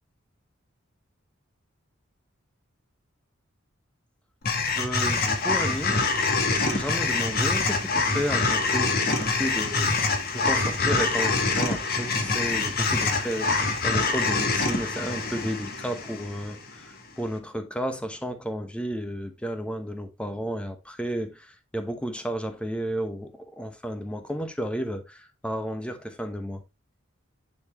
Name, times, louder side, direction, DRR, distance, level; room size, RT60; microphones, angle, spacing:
sound 1, 4.4-16.8, left 3 dB, 45° left, 1.4 m, -25 dB
voice 1, 4.7-6.0 6.5-26.6, equal, 5° left, 1.0 m, -33 dB
10.0 x 4.4 x 3.1 m
head